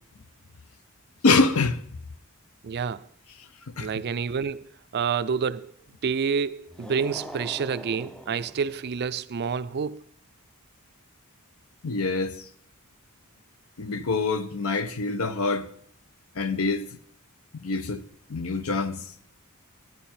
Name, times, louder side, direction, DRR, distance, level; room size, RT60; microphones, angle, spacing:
voice 1, 1.2-1.8 3.8-3.9 11.8-12.5 13.8-15.7 16.3-16.9 17.5-18.0 18.3-19.1, left 3 dB, 70° left, 0.7 m, -25 dB
voice 2, 2.6-3.0 3.8-4.7 4.9-5.7 6.0-10.0, right 6 dB, 50° right, 0.4 m, -28 dB
sound 1, 6.7-9.1, equal, 5° left, 0.5 m, -42 dB
11.5 x 10.5 x 4.3 m
head